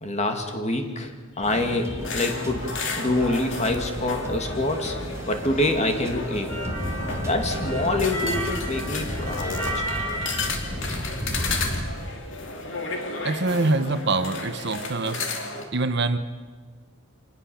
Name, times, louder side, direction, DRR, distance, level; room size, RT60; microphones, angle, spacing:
voice 1, 0.0-5.0 5.3-6.6 7.2-10.0, left 2 dB, 35° left, 5 dB, 2.5 m, -26 dB
sound 1, 1.4-11.6, equal, 15° right, 2.4 m, -36 dB
sound 2, 2.0-15.6, left 3 dB, 60° left, 2.7 m, -33 dB
sound 3, 6.5-12.2, equal, 10° left, 5.7 m, -31 dB
voice 2, 13.2-15.2 15.7-16.2, right 3 dB, 55° right, 10 dB, 1.1 m, -24 dB
25.5 x 19.5 x 7.2 m, 1.4 s
head